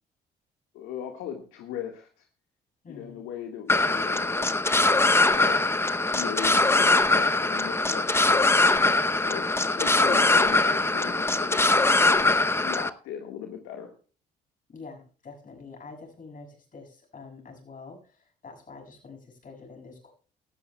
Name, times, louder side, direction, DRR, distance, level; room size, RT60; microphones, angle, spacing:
voice 1, 0.7-2.3 2.9-5.6 6.1-12.3 12.6-13.9, left 9 dB, 80° left, 3 dB, 1.6 m, -38 dB
voice 2, 2.8-3.2 14.7-20.1, left 4 dB, 40° left, 3 dB, 6.8 m, -46 dB
sound 1, 3.7-12.9, left 2 dB, 10° left, 0.7 m, -22 dB
17.5 x 13.5 x 2.3 m, 0.37 s
supercardioid pair, 65°, 20 cm